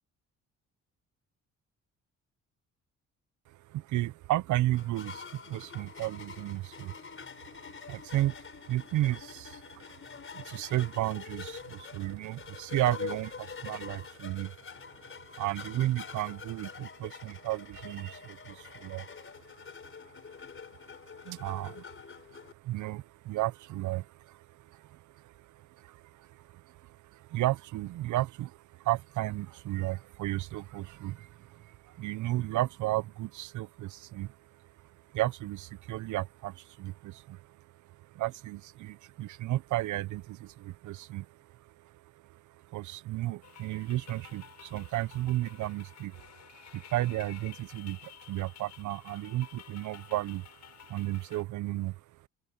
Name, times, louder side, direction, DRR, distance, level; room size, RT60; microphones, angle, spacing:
voice 1, 3.5-52.3, right 16 dB, 75° right, 0.6 m, -34 dB
sound 1, 4.7-22.5, left 6 dB, 40° left, 4.6 m, -45 dB
sound 2, 43.4-51.4, left 10 dB, 65° left, 7.0 m, -52 dB
open air
cardioid pair, 90°, 30 cm